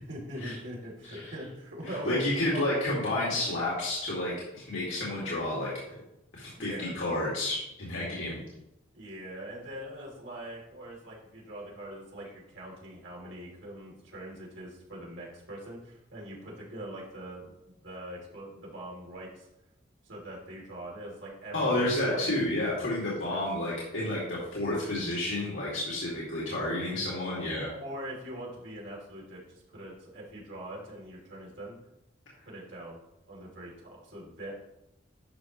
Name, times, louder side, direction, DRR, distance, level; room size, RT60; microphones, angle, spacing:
voice 1, 0.0-2.2 2.5-2.6 3.1-3.2 6.5-6.9 8.9-19.5 20.0-22.4 23.3-23.4 27.8-31.8 32.4-33.0 33.3-34.6, right 1 dB, 70° right, -4 dB, 2.9 m, -42 dB
voice 2, 1.8-5.7 6.3-8.4 21.5-27.7, left 1 dB, 85° left, -6 dB, 2.3 m, -30 dB
11.0 x 6.0 x 3.1 m, 0.88 s
head